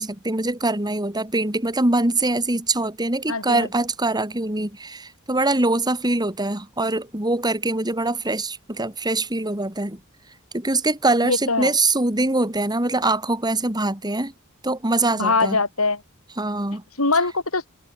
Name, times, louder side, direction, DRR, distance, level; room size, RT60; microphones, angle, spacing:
voice 1, 0.0-10.0 10.5-14.3 14.6-15.6 16.4-16.8, right 2 dB, 20° right, 3.0 m, -23 dB
voice 2, 3.3-3.7 11.2-11.7 15.2-16.0 17.0-17.7, left 3 dB, 85° left, 7.2 m, -22 dB
head